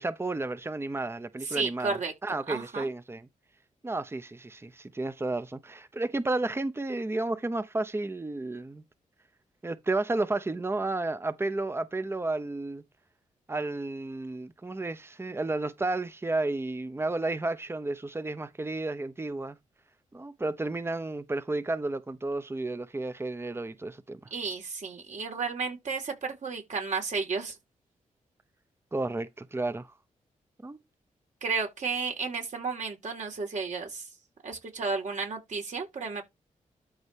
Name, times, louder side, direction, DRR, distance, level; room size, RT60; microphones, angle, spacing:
voice 1, 0.0-3.3 3.8-8.8 9.6-12.8 13.5-19.6 20.1-24.2 28.9-29.9 30.6-30.8, right 2 dB, 15° right, 0.8 m, -32 dB
voice 2, 1.4-2.1 2.5-2.9 24.3-27.6 31.4-34.1 34.4-36.2, right 4 dB, 60° right, 3.9 m, -32 dB
12.5 x 4.3 x 3.5 m
cardioid pair, 70°, 14 cm